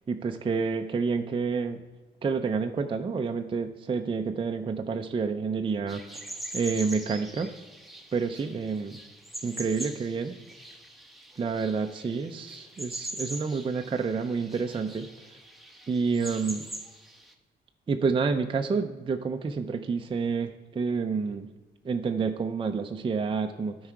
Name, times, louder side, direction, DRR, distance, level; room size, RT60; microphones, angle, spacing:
voice 1, 0.1-1.8 2.2-7.5 8.1-9.0 9.4-10.3 11.4-15.1 15.9-16.7 17.9-21.5 21.8-23.9, right 5 dB, 25° right, 5 dB, 0.5 m, -29 dB
sound 1, 5.9-17.3, right 1 dB, ahead, 1.0 m, -42 dB
12.5 x 4.8 x 4.6 m, 1.2 s
cardioid pair, 90°, 20 cm